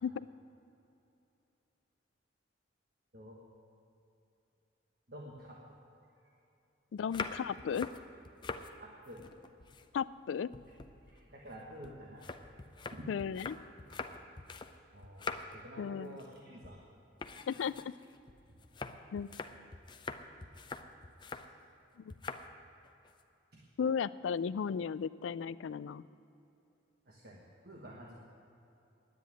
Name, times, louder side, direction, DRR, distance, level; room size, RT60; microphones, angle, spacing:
voice 1, 5.1-5.6 7.3-7.5 8.8-9.2 11.1-12.3 12.9-13.1 14.9-16.8 23.5-23.6 27.1-28.1, equal, 55° right, -2 dB, 1.3 m, -50 dB
voice 2, 6.9-7.9 9.9-10.5 13.1-13.6 15.8-16.2 17.5-17.9 19.1-19.3 22.0-22.1 23.8-26.1, left 7 dB, 80° left, 17 dB, 0.3 m, -35 dB
sound 1, 7.0-8.7 9.1-10.2 10.5-14.8 15.0-15.7 16.0-16.4 16.6-16.8 17.2-21.5 22.1-22.5 22.8-23.2, left 4 dB, 25° left, 0.5 m, -44 dB
10.5 x 9.3 x 9.4 m, 2.9 s
head